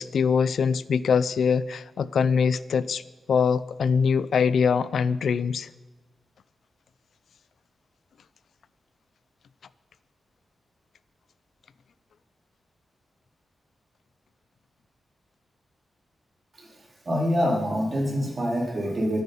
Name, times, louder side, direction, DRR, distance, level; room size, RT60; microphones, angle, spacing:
voice 1, 0.0-3.0 3.3-5.7, left 6 dB, 80° left, 17 dB, 0.5 m, -23 dB
voice 2, 17.1-19.2, equal, 35° right, -1 dB, 3.8 m, -25 dB
23.5 x 9.4 x 5.6 m, 1.1 s
wide cardioid pair, 115°, 0 cm